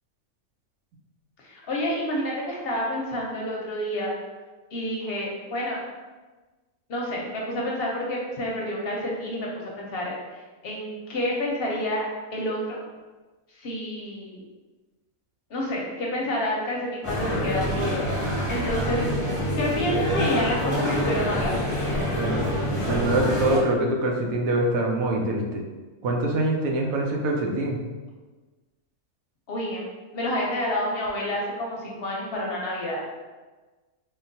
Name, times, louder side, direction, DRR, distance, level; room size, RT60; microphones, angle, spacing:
voice 1, 1.4-4.1 4.7-5.8 6.9-9.5 9.8-10.1 10.6-12.0 12.3-12.8 13.6-14.4 15.5-18.1 18.5-19.0 19.6-21.5 29.5-29.8 30.1-33.0, left 1 dB, 55° left, -3 dB, 0.7 m, -29 dB
sound 1, 17.0-23.6, equal, 15° left, 0.7 m, -26 dB
voice 2, 22.1-22.5 22.9-25.6 26.0-27.8, right 1 dB, 85° right, 0 dB, 1.0 m, -24 dB
3.7 x 2.2 x 2.6 m, 1.3 s
omnidirectional pair, 1.4 m